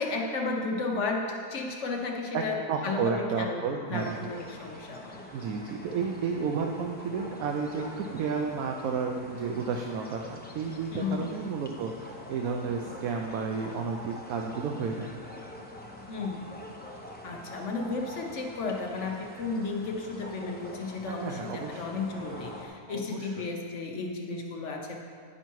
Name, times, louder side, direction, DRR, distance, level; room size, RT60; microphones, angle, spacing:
voice 1, 0.0-3.6 3.9-5.2 10.9-11.3 16.1-16.5 17.2-25.0, left 3 dB, 55° left, 1 dB, 1.1 m, -33 dB
voice 2, 2.7-4.2 5.3-15.1 21.1-21.8 22.9-23.3, right 5 dB, 75° right, 3 dB, 1.0 m, -32 dB
sound 1, 3.9-22.7, left 1 dB, 10° left, 0.4 m, -45 dB
9.9 x 5.7 x 4.6 m, 2.2 s
omnidirectional pair, 1.6 m